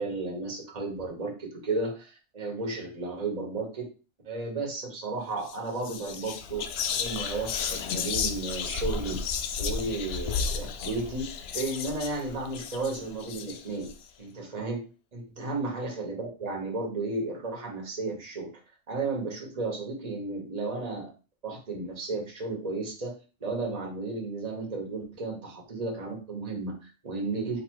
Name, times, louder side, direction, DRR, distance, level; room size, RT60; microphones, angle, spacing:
voice 1, 0.0-3.9 4.2-6.6 7.0-13.9 14.2-14.8 15.1-18.5 18.9-21.1 21.4-23.1 23.4-27.6, right 3 dB, 30° right, -1 dB, 1.3 m, -33 dB
Whispering, 5.4-5.6 5.8-13.9, left 6 dB, 65° left, 0.6 m, -33 dB
4.0 x 2.7 x 4.6 m, 0.34 s
omnidirectional pair, 1.4 m